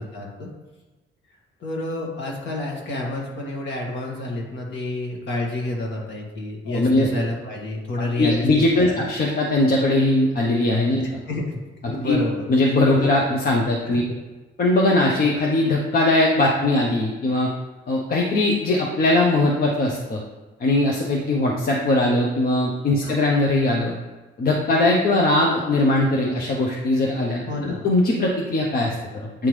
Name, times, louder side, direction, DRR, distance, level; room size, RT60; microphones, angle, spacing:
voice 1, 0.1-0.5 1.6-9.0 11.0-11.6 11.9-13.1 13.9-14.2 23.0-23.2 27.5-27.8, left 2 dB, 65° left, -1 dB, 1.6 m, -29 dB
voice 2, 6.7-7.1 8.2-11.0 11.8-12.2 12.5-14.0 14.6-17.5 17.9-20.2 20.6-23.9 24.4-29.5, left 2 dB, 50° left, -2 dB, 0.8 m, -20 dB
8.7 x 3.6 x 3.2 m, 1.2 s
cardioid pair, 90°, 20 cm